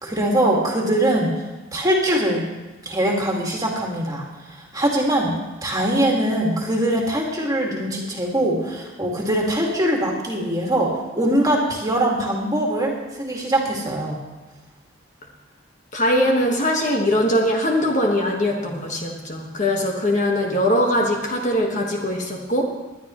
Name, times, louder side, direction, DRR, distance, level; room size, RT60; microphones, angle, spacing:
voice 1, 0.0-1.3 1.7-2.5 2.8-5.3 5.6-14.2, right 1 dB, 20° right, -1 dB, 2.1 m, -22 dB
voice 2, 15.9-22.6, left 1 dB, 40° left, 0 dB, 1.5 m, -21 dB
19.5 x 11.0 x 3.1 m, 1.1 s
head